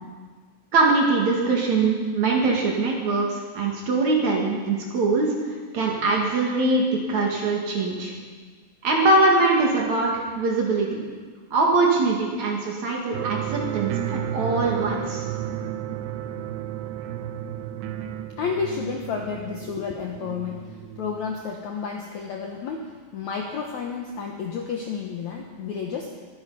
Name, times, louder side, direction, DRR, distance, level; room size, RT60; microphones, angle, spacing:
voice 1, 0.7-5.3 5.7-8.1 8.8-11.1 11.5-15.2, right 3 dB, 50° right, -1 dB, 2.8 m, -22 dB
sound 1, 13.1-21.3, right 10 dB, 80° right, 2.9 m, -32 dB
voice 2, 18.4-20.6 21.0-26.1, left 6 dB, 90° left, 1 dB, 1.6 m, -31 dB
22.5 x 9.4 x 5.5 m, 1.5 s
omnidirectional pair, 5.0 m